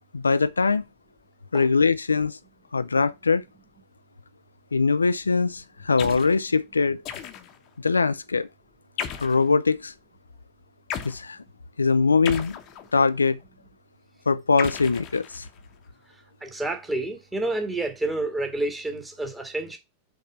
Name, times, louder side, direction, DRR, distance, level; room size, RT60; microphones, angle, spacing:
voice 1, 0.1-0.8 1.5-2.4 2.7-3.4 4.7-7.0 7.8-8.5 9.2-9.9 11.0-11.4 11.8-12.6 12.9-13.4 14.3-15.4, left 4 dB, 75° left, 0.4 m, -22 dB
sound 1, 6.0-6.4 7.0-7.7 9.0-9.5 10.9-11.2 12.2-13.1 14.6-15.6, left 8 dB, 40° left, 0.9 m, -35 dB
voice 2, 16.4-19.8, right 2 dB, 10° right, 1.8 m, -29 dB
5.4 x 4.7 x 5.8 m
figure-of-eight pair, 90°, 0 cm